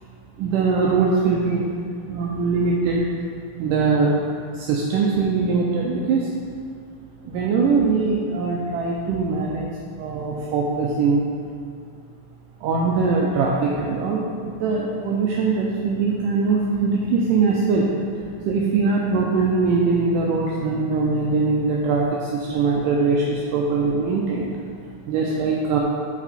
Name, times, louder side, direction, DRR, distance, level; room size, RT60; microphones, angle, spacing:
voice 1, 0.4-1.6 2.1-3.0 3.6-4.2 4.6-6.3 7.3-9.7 10.0-11.2 12.6-17.9 18.5-24.5 25.1-25.8, right 4 dB, 80° right, -3 dB, 1.9 m, -21 dB
8.8 x 5.4 x 4.1 m, 2.2 s
omnidirectional pair, 4.4 m